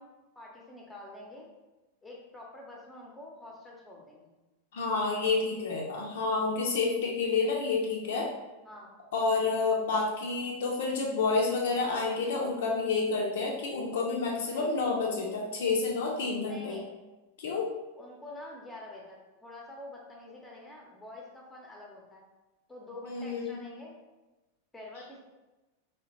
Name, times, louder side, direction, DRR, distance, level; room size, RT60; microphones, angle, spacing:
voice 1, 0.0-1.5 2.0-4.3 5.7-5.8 8.6-8.9 14.3-15.0 16.4-16.9 17.9-22.3 22.7-24.0 24.7-25.2, left 2 dB, 5° left, -2 dB, 0.8 m, -47 dB
voice 2, 4.7-8.3 9.1-16.8 17.4-17.7 23.0-23.6, left 4 dB, 60° left, -1 dB, 0.5 m, -29 dB
3.0 x 2.8 x 2.9 m, 1.1 s
figure-of-eight pair, 90°, 0 cm